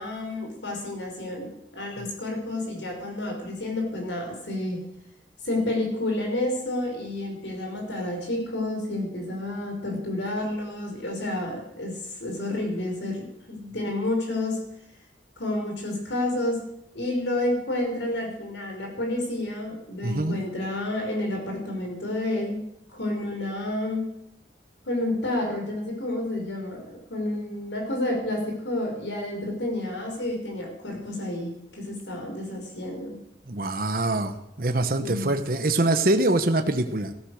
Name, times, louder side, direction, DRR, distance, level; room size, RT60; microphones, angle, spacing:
voice 1, 0.0-4.8 5.4-14.6 15.4-16.6 16.9-22.6 22.9-24.0 24.9-33.2 35.0-35.4, left 1 dB, 85° left, 2 dB, 5.6 m, -30 dB
voice 2, 20.0-20.4 33.5-37.1, right 2 dB, 50° right, 7 dB, 1.1 m, -24 dB
16.0 x 13.5 x 6.5 m, 0.79 s
head